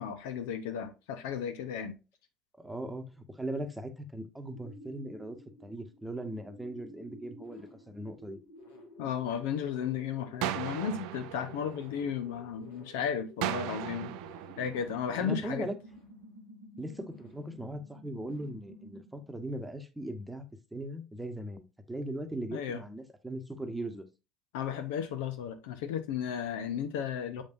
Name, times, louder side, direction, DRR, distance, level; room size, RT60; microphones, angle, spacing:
voice 1, 0.0-2.0 9.0-14.1 14.6-15.7 22.5-22.8 24.5-27.4, left 8 dB, 70° left, 0.7 m, -34 dB
voice 2, 2.6-5.4 5.6-8.4 15.2-15.8 16.8-20.4 20.7-24.1, right 1 dB, 10° right, 1.1 m, -39 dB
sound 1, 4.4-19.3, left 1 dB, 90° left, 2.3 m, -52 dB
sound 2, 10.4-12.5 13.4-15.5, right 14 dB, 65° right, 0.5 m, -38 dB
7.1 x 5.3 x 2.6 m
hypercardioid pair, 65°, 0 cm